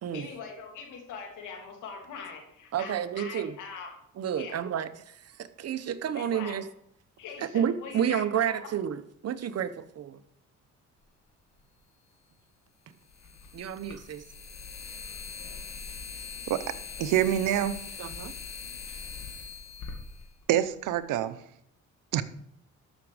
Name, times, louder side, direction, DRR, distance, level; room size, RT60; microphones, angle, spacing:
voice 1, 0.1-3.9 4.3-4.6 6.1-6.6 7.2-8.7, left 5 dB, 85° left, 2.8 m, -42 dB
voice 2, 2.7-3.6 4.2-6.6 7.4-10.2 13.5-14.2 18.0-18.3, right 9 dB, 55° right, 0.9 m, -30 dB
sound 1, 11.6-11.7 13.0-21.0, left 5 dB, 65° left, 2.3 m, -41 dB
voice 3, 17.0-17.7 20.5-21.4 22.1-22.2, right 12 dB, 90° right, 0.8 m, -25 dB
13.5 x 6.1 x 4.9 m
cardioid pair, 90°, 30 cm